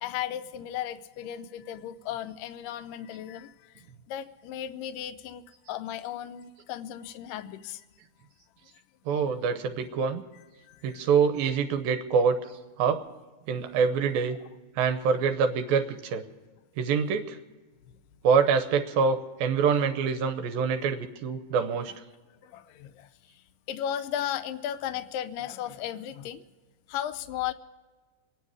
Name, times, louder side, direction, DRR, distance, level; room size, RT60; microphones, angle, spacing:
voice 1, 0.0-7.8 10.7-11.1 22.4-23.1 23.7-26.4 26.9-27.5, left 10 dB, 80° left, 12 dB, 2.1 m, -35 dB
voice 2, 9.1-10.2 10.8-13.0 13.5-14.4 14.8-16.2 16.8-17.4 18.2-21.9, right 6 dB, 75° right, 8 dB, 2.5 m, -25 dB
25.0 x 10.0 x 4.8 m, 1.3 s
omnidirectional pair, 4.5 m